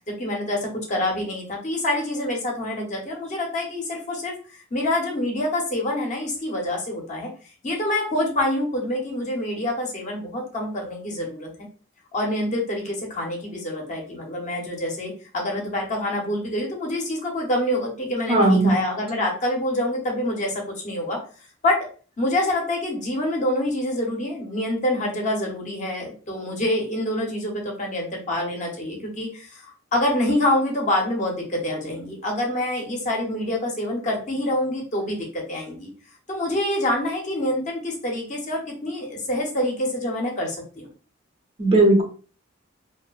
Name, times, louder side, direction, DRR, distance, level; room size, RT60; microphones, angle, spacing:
voice 1, 0.1-4.3 4.7-7.3 7.6-11.5 12.1-21.2 21.6-21.9 22.2-35.9 36.3-40.9, left 1 dB, 40° left, 0 dB, 0.7 m, -26 dB
voice 2, 18.3-18.8 41.6-42.0, right 2 dB, 30° right, 0 dB, 0.6 m, -16 dB
2.7 x 2.1 x 2.3 m, 0.39 s
head